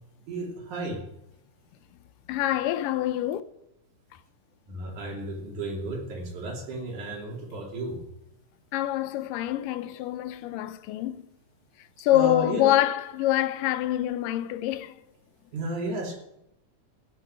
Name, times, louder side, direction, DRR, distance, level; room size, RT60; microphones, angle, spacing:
voice 1, 0.3-1.0 4.7-8.0 12.1-12.8 15.5-16.1, right 2 dB, 65° right, 4.1 m, -33 dB
voice 2, 2.3-3.4 8.7-11.3 12.0-15.0, left 14 dB, 85° left, 2.3 m, -25 dB
14.5 x 6.5 x 9.2 m
omnidirectional pair, 3.8 m